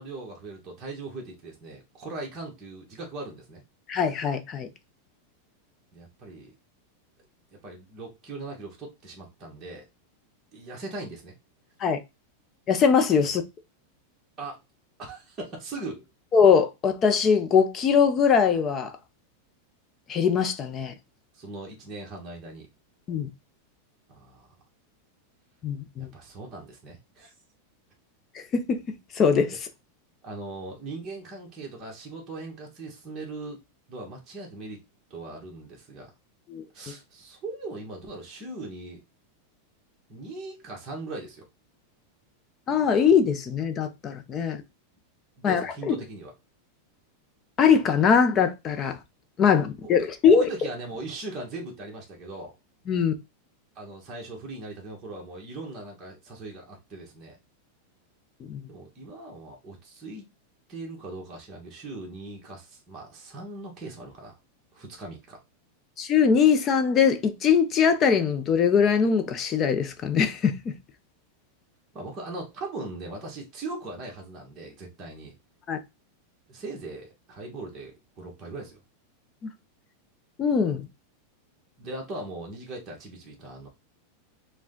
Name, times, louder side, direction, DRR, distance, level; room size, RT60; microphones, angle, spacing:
voice 1, 0.0-3.6 5.9-6.5 7.6-9.9 10.5-11.3 14.4-14.6 15.0-16.1 21.3-22.7 24.1-24.5 26.1-27.3 30.2-33.6 33.9-34.8 35.1-36.1 36.7-39.0 40.1-41.5 45.4-46.3 49.8-52.5 53.7-57.4 58.7-60.2 60.7-64.4 64.7-65.4 71.9-75.3 76.5-78.8 81.8-83.7, right 2 dB, 25° right, 1.4 m, -39 dB
voice 2, 3.9-4.7 11.8-12.0 12.7-13.4 16.3-18.9 20.1-20.9 23.1-23.3 25.6-26.1 28.5-28.8 29.1-29.5 36.5-36.6 42.7-44.6 45.4-45.9 47.6-49.0 49.4-50.4 52.9-53.1 58.5-58.6 66.0-70.7 75.7-75.8 80.4-80.8, left 6 dB, 25° left, 0.6 m, -21 dB
4.8 x 2.3 x 3.7 m
supercardioid pair, 140°, 0 cm